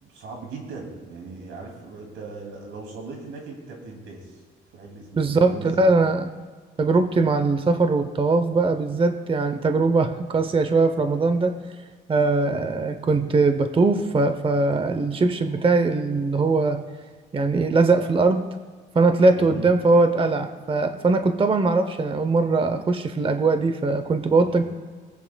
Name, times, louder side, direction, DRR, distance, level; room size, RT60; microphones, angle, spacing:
voice 1, 0.0-4.4 4.7-5.9 12.3-12.4 19.3-19.7 24.4-24.6, right 3 dB, 85° right, 0 dB, 2.4 m, -39 dB
voice 2, 5.2-6.3 6.8-11.6 12.1-16.8 17.3-18.5 18.9-24.6, right 3 dB, 25° right, 9 dB, 0.7 m, -21 dB
21.5 x 8.5 x 2.2 m, 1.5 s
cardioid pair, 90°, 20 cm